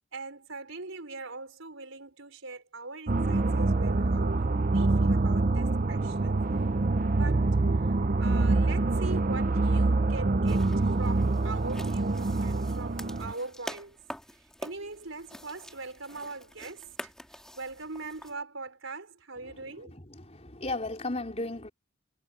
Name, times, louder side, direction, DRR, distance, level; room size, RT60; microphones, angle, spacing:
voice 1, 0.1-6.4 7.1-7.5 8.2-14.0 14.6-17.1 17.5-19.9, right 3 dB, 85° right, 4.5 m, -41 dB
sound 1, 3.1-13.3, right 2 dB, 40° right, 0.6 m, -25 dB
sound 2, 10.5-18.3, equal, 5° left, 2.5 m, -46 dB
voice 2, 19.4-21.7, left 2 dB, 30° left, 4.3 m, -36 dB
head